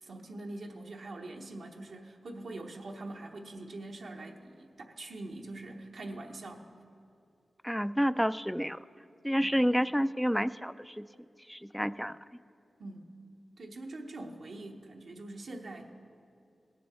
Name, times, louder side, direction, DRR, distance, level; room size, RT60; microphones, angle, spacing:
voice 1, 0.0-6.7 9.4-9.5 12.8-13.1 13.6-15.9, right 2 dB, 80° right, 0 dB, 0.9 m, -43 dB
voice 2, 7.6-8.8 9.2-11.1 11.5-12.2, equal, ahead, 14 dB, 0.3 m, -29 dB
17.5 x 6.3 x 4.3 m, 2.6 s
cardioid pair, 50°, 0 cm